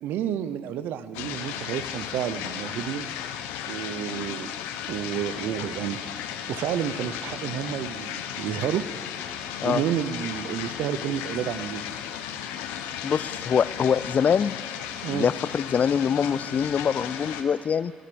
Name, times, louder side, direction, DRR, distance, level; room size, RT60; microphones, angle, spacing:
voice 1, 0.0-3.1 3.7-4.5 4.9-6.2 6.5-8.9 9.6-11.8 15.0-15.3, right 10 dB, 75° right, 13 dB, 0.6 m, -30 dB
sound 1, 1.1-17.4, left 9 dB, 85° left, 0.7 m, -35 dB
voice 2, 13.0-14.5 15.1-17.9, left 7 dB, 50° left, 19 dB, 0.3 m, -24 dB
18.0 x 9.9 x 6.9 m, 2.3 s
hypercardioid pair, 50°, 3 cm